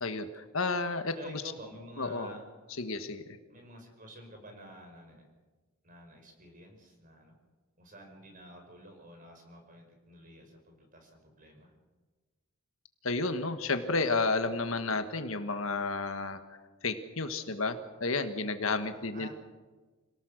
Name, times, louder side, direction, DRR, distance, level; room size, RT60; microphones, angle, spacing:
voice 1, 0.0-1.4 2.0-2.3 2.8-3.2 13.0-16.4 16.8-19.3, left 3 dB, 65° left, 8 dB, 1.5 m, -31 dB
voice 2, 1.1-2.4 3.5-5.3 5.8-7.4 7.8-11.7 18.8-19.3, right 1 dB, 40° right, 3 dB, 5.4 m, -50 dB
26.5 x 18.0 x 6.6 m, 1.3 s
head